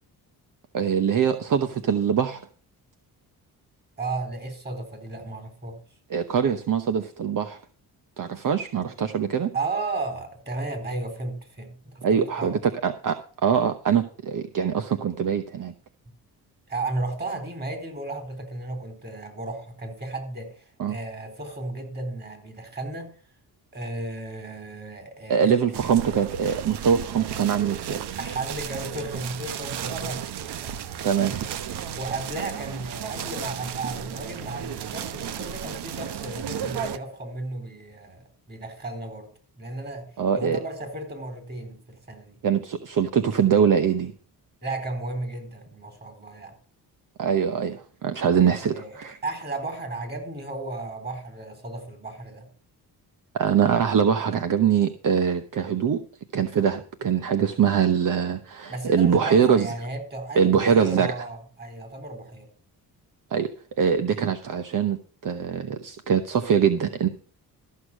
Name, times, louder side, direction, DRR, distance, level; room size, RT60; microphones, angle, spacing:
voice 1, 0.7-2.4 6.1-7.6 8.2-9.5 12.0-13.2 13.4-15.7 20.8-20.9 25.3-28.0 31.0-31.3 40.2-40.6 42.4-44.1 47.2-49.2 53.3-56.0 56.3-59.7 60.4-61.1 63.3-63.5 63.8-65.0 65.2-67.1, right 7 dB, 50° right, 8 dB, 1.0 m, -23 dB
voice 2, 4.0-5.7 9.5-12.5 16.7-23.1 23.7-25.5 28.2-30.7 31.2-31.4 31.8-39.3 39.6-40.1 40.3-42.4 44.6-46.6 48.4-52.5 58.7-62.5, right 2 dB, 25° right, 5 dB, 4.2 m, -34 dB
sound 1, 25.7-37.0, right 9 dB, 80° right, 1.0 m, -34 dB
13.5 x 6.6 x 6.1 m, 0.43 s
cardioid pair, 100°, 39 cm